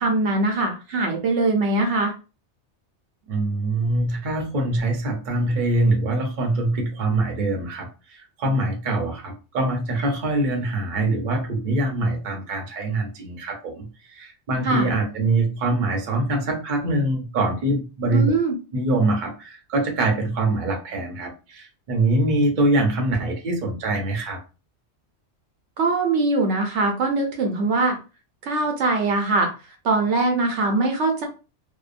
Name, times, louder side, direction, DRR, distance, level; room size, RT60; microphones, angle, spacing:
voice 1, 0.0-2.1 14.6-14.9 18.1-18.6 25.8-28.0 28.4-29.5 29.8-31.3, right 3 dB, 75° right, 3 dB, 0.9 m, -22 dB
voice 2, 3.3-18.3 18.7-24.4, right 2 dB, 50° right, 2 dB, 0.7 m, -24 dB
2.8 x 2.1 x 2.4 m, 0.32 s
omnidirectional pair, 1.2 m